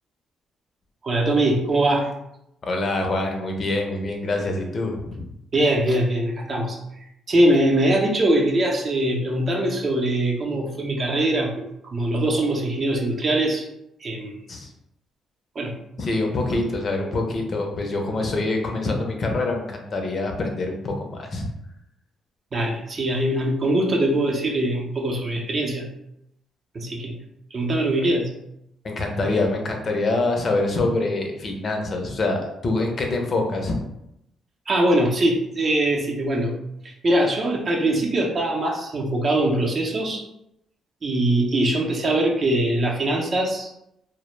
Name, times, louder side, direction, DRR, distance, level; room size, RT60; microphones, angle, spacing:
voice 1, 1.0-2.1 5.5-6.8 7.3-11.7 11.9-13.7 14.0-14.4 15.6-15.7 22.5-25.9 26.7-27.2 27.5-28.3 34.7-36.5 36.8-40.2 41.0-43.7, right 1 dB, 45° right, -1 dB, 0.5 m, -22 dB
voice 2, 2.6-5.3 14.5-14.7 16.0-21.5 28.8-33.8, left 2 dB, 45° left, 2 dB, 0.5 m, -25 dB
2.0 x 2.0 x 3.1 m, 0.80 s
cardioid pair, 90°, 0 cm